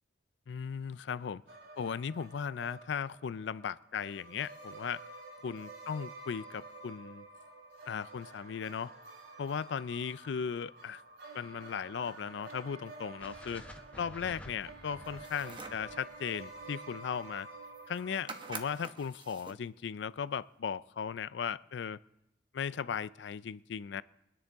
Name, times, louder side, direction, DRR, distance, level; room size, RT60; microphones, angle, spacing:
voice 1, 0.5-1.4 1.8-5.0 5.4-7.3 7.9-8.9 9.4-11.0 11.3-13.6 14.0-17.5 17.9-22.0 22.5-24.0, left 7 dB, 70° left, 0.4 m, -37 dB
sound 1, 1.5-18.9, right 3 dB, 90° right, 6.1 m, -50 dB
sound 2, 13.2-17.4, left 1 dB, 10° left, 0.8 m, -52 dB
sound 3, 15.0-15.9 17.4-17.5 17.7-18.0 18.3-19.7, right 4 dB, 25° right, 0.9 m, -46 dB
23.5 x 9.9 x 3.5 m
head